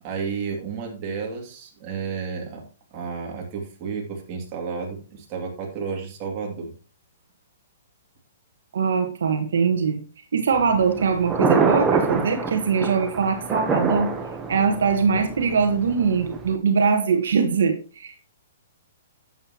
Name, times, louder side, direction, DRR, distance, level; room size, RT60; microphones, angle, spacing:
voice 1, 0.0-2.6 2.9-6.7, right 5 dB, 30° right, 0 dB, 2.7 m, -32 dB
voice 2, 8.7-10.0 10.3-14.1 14.5-18.3, right 5 dB, 80° right, 6 dB, 1.5 m, -22 dB
Thunder, 10.5-16.6, right 4 dB, 15° right, 1.0 m, -26 dB
10.5 x 7.8 x 3.0 m, 0.35 s
hypercardioid pair, 155°, 0 cm